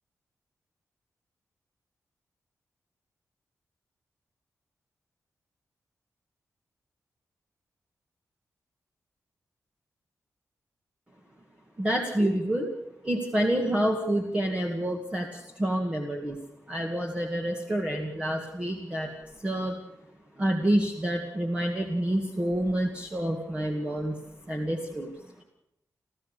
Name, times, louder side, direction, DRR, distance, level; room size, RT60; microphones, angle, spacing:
voice 1, 11.8-12.7 13.0-16.4 16.7-19.1 19.4-19.8 20.4-24.2 24.5-25.1, right 1 dB, 20° right, 0 dB, 2.1 m, -28 dB
28.0 x 15.0 x 6.6 m, 0.83 s
wide cardioid pair, 170°, 6 cm